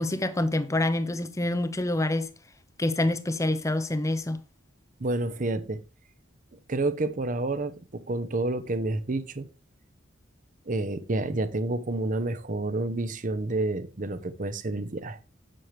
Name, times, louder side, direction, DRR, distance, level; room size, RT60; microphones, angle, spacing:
voice 1, 0.0-2.3 2.8-4.4, left 1 dB, 15° left, 0.7 m, -26 dB
voice 2, 5.0-5.8 6.7-9.5 10.7-15.2, right 2 dB, 45° right, 0.8 m, -29 dB
7.7 x 7.5 x 3.3 m
head